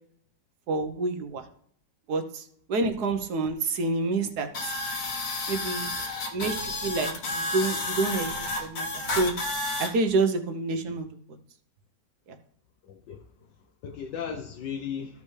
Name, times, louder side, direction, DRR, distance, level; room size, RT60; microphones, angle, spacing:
voice 1, 0.7-1.4 2.1-4.5 5.5-5.9 6.3-9.3 9.8-11.1, right 3 dB, 65° right, 7 dB, 1.5 m, -28 dB
sound 1, 4.5-9.9, left 2 dB, 60° left, 1.8 m, -31 dB
voice 2, 12.8-13.3 13.6-15.2, left 7 dB, 80° left, 4 dB, 1.5 m, -36 dB
14.5 x 5.4 x 3.3 m, 0.64 s
omnidirectional pair, 1.9 m